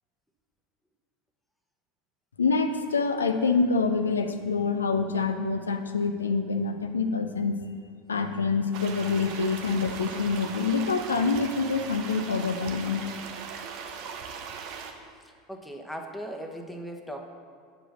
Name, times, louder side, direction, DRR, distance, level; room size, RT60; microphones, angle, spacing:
voice 1, 2.4-7.6 8.1-13.0, left 4 dB, 85° left, 7 dB, 0.4 m, -26 dB
sound 1, 8.7-14.9, right 6 dB, 55° right, 0.8 m, -39 dB
voice 2, 15.2-17.2, equal, 5° left, 2 dB, 1.1 m, -38 dB
8.8 x 5.1 x 6.3 m, 2.1 s
hypercardioid pair, 80°, 0 cm